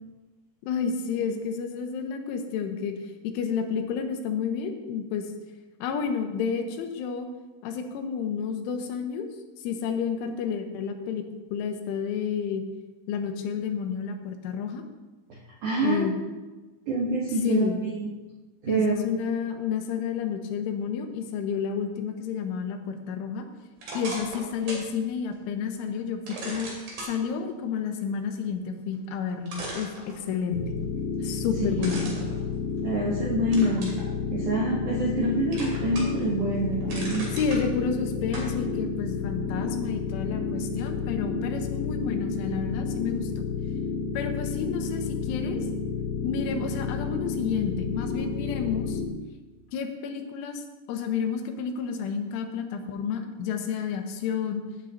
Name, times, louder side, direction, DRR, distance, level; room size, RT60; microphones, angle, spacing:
voice 1, 0.6-3.0 3.3-5.3 5.8-7.3 7.6-9.3 9.6-11.2 11.5-12.6 13.1-14.8 15.8-16.1 17.4-17.8 18.7-23.5 23.9-26.7 27.0-30.6 31.2-32.1 37.3-43.5 44.1-45.6 46.2-49.0 49.7-50.6 50.9-54.6, left 6 dB, 90° left, 5 dB, 3.5 m, -30 dB
voice 2, 15.3-16.2 16.9-18.1 18.6-19.1 31.2-31.3 31.6-31.9 32.8-33.9 34.3-37.3, right 1 dB, 75° right, -3 dB, 1.8 m, -26 dB
sound 1, 23.8-24.9 25.3-25.4 26.3-27.1 28.9-29.0 29.5-30.6 31.8-33.1 33.5-34.0 34.6-35.2 35.5-36.3 36.6-37.6 38.3-38.5, right 2 dB, 50° right, 3.9 m, -38 dB
sound 2, 30.5-49.1, left 5 dB, 75° left, 2.1 m, -31 dB
17.0 x 9.0 x 2.8 m, 1.2 s
omnidirectional pair, 5.4 m